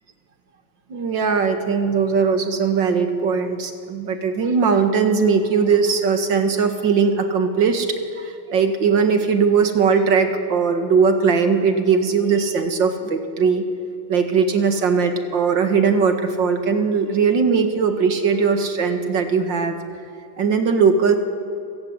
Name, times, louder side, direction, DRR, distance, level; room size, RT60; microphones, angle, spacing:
voice 1, 0.9-7.9 8.1-13.6 14.1-19.8 20.4-21.2, right 5 dB, 75° right, 7 dB, 2.5 m, -19 dB
29.0 x 15.5 x 9.7 m, 2.8 s
omnidirectional pair, 2.0 m